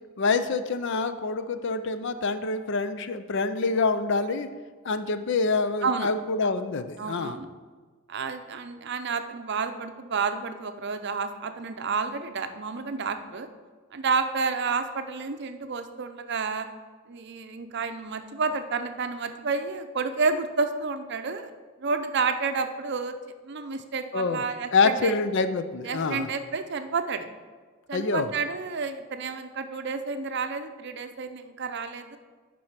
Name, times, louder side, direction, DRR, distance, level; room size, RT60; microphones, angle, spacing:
voice 1, 0.2-4.5 4.8-7.4 24.1-24.4 24.7-26.3 27.9-28.3, left 4 dB, 60° left, 10 dB, 0.5 m, -26 dB
voice 2, 7.0-7.5 8.1-13.5 13.9-16.7 17.1-21.5 21.8-23.2 23.4-25.1 25.8-27.3 27.9-32.2, right 4 dB, 55° right, 8 dB, 0.6 m, -30 dB
7.7 x 5.4 x 5.8 m, 1.4 s
head